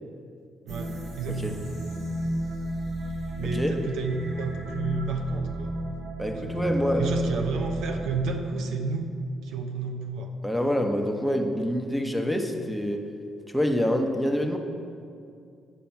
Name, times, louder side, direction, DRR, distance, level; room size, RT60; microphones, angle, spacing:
sound 1, 0.7-8.2, equal, 65° right, 1.8 m, -32 dB
voice 1, 0.7-1.7 3.4-5.7 6.4-6.7 7.0-9.1 9.4-10.3, right 4 dB, 85° right, 4 dB, 0.8 m, -31 dB
voice 2, 6.2-7.4 10.4-13.1 13.5-14.6, equal, ahead, 3 dB, 0.9 m, -26 dB
8.8 x 5.1 x 5.8 m, 2.4 s
cardioid pair, 90°, 0 cm